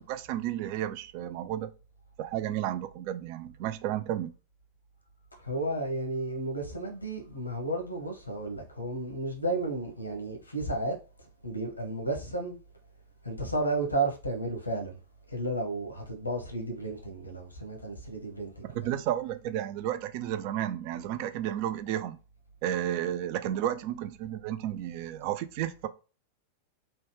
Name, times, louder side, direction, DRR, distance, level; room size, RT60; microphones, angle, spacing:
voice 1, 0.0-1.7 2.2-4.3 18.7-22.2 22.6-25.9, right 11 dB, 45° right, 0.3 m, -32 dB
voice 2, 5.3-12.6 13.2-15.0 15.3-19.0, right 2 dB, 85° left, 0.9 m, -33 dB
3.2 x 2.2 x 3.2 m
figure-of-eight pair, 90°, 0 cm